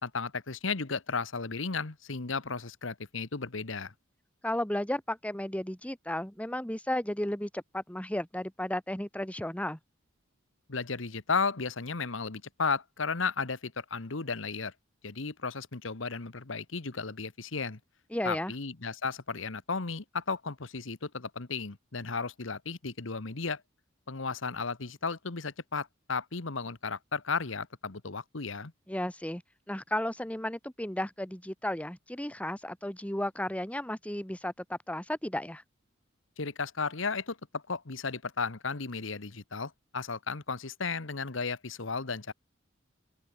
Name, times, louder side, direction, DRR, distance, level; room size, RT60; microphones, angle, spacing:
voice 1, 0.0-3.9 10.7-14.7 15.0-17.8 18.2-23.6 24.1-28.7 36.4-42.3, left 4 dB, 75° left, 1.4 m, -34 dB
voice 2, 4.4-9.8 18.1-18.5 28.9-29.4 29.7-35.6, left 1 dB, 5° left, 1.6 m, -34 dB
open air
head